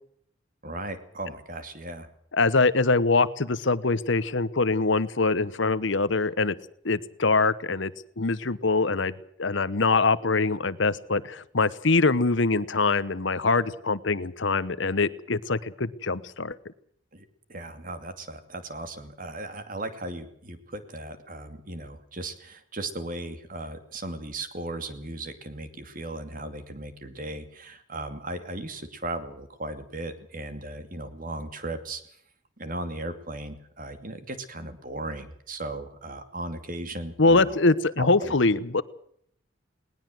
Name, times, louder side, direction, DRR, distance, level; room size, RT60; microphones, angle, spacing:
voice 1, 0.6-2.1 17.1-32.0 32.6-37.6 38.0-38.3, right 2 dB, 45° right, 9 dB, 2.5 m, -37 dB
voice 2, 2.3-6.5 6.8-9.1 9.4-16.6 37.2-38.8, left 3 dB, 70° left, 16 dB, 1.0 m, -23 dB
20.0 x 19.5 x 7.8 m, 0.65 s
head